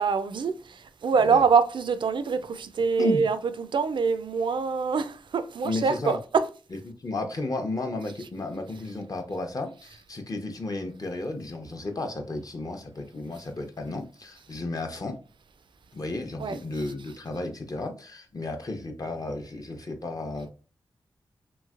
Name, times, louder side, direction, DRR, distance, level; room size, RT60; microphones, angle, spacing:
voice 1, 0.0-6.4 16.4-16.6, right 5 dB, 65° right, 0.3 m, -25 dB
voice 2, 5.6-6.2 6.9-15.2 15.9-20.5, left 2 dB, 45° left, 0.7 m, -33 dB
3.0 x 2.7 x 2.4 m
cardioid pair, 40°, 9 cm